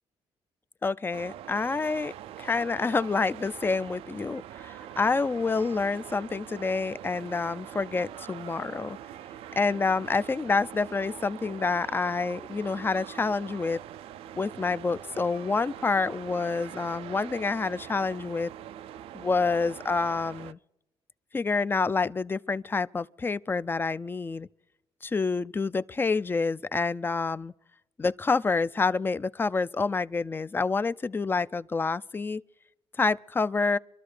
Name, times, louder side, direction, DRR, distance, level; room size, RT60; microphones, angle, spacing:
voice 1, 0.8-9.0 9.6-13.8 14.4-18.5 19.1-20.6 21.3-24.5 25.0-27.5 28.0-32.4 33.0-33.8, left 4 dB, 20° left, 0.4 m, -28 dB
sound 1, 1.1-20.5, right 11 dB, 75° right, 0.4 m, -43 dB
26.0 x 12.5 x 3.3 m
cardioid pair, 90°, 10 cm